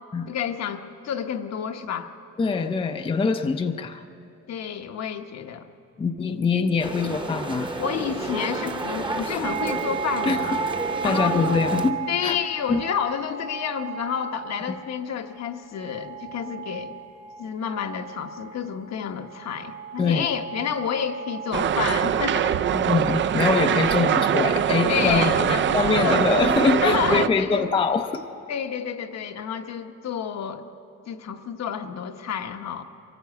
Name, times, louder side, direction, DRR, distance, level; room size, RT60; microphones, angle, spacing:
voice 1, 0.3-2.1 4.5-5.7 7.8-10.6 11.0-11.7 12.1-16.9 17.4-22.5 23.6-23.7 24.9-26.2 26.8-27.7 28.5-30.7 31.1-32.8, left 8 dB, 65° left, 6 dB, 1.0 m, -29 dB
voice 2, 2.4-4.0 6.0-7.7 10.3-10.6 11.0-12.4 12.7-12.8 20.0-20.3 22.7-28.2, left 5 dB, 20° left, 7 dB, 0.5 m, -24 dB
sound 1, 6.8-11.9, right 2 dB, 15° right, 0.9 m, -31 dB
sound 2, 9.4-22.4 22.9-24.5 24.8-26.2, right 8 dB, 65° right, 2.1 m, -36 dB
sound 3, 21.5-27.3, right 9 dB, 40° right, 0.4 m, -22 dB
23.5 x 16.0 x 9.4 m, 2.8 s
wide cardioid pair, 180°, 29 cm